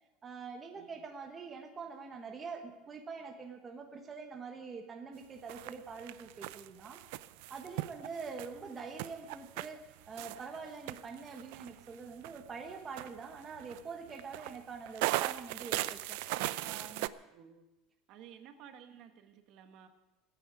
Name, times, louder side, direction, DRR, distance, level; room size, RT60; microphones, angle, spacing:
voice 1, 0.2-7.0 7.5-16.2 16.6-17.1, right 5 dB, 20° right, 3 dB, 1.2 m, -45 dB
voice 2, 0.7-1.1 8.0-8.3 17.3-17.7 18.1-19.9, right 8 dB, 50° right, 7 dB, 1.4 m, -55 dB
sound 1, 5.5-17.1, right 17 dB, 75° right, 0.5 m, -38 dB
24.0 x 9.5 x 4.9 m, 0.95 s
cardioid pair, 160°, 0 cm